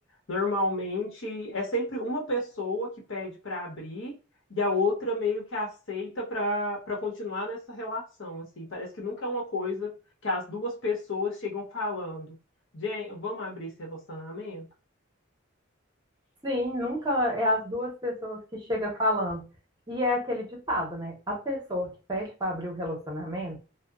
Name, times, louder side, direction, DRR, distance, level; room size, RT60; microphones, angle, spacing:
voice 1, 0.3-4.1 4.5-10.0 10.2-12.3 12.7-14.6, left 2 dB, 70° left, -1 dB, 0.9 m, -31 dB
voice 2, 16.4-19.4 19.9-23.6, left 1 dB, 20° right, -1 dB, 0.8 m, -29 dB
2.7 x 2.1 x 2.3 m, 0.34 s
head